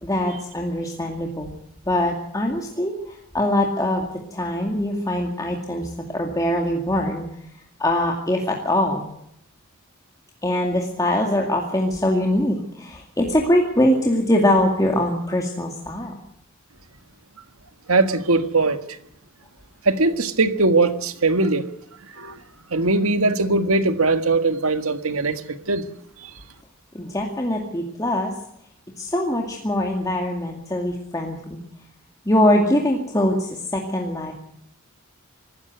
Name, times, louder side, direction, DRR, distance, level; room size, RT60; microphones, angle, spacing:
voice 1, 0.0-1.5 1.9-7.2 7.8-9.0 10.4-16.1 26.9-28.3 29.0-31.6 32.3-34.3, left 1 dB, 15° left, 2.3 m, -22 dB
voice 2, 17.9-18.8 19.9-21.7 22.1-22.4 22.7-25.9 26.2-26.3, right 3 dB, 80° right, 1.8 m, -20 dB
24.5 x 14.0 x 8.0 m
head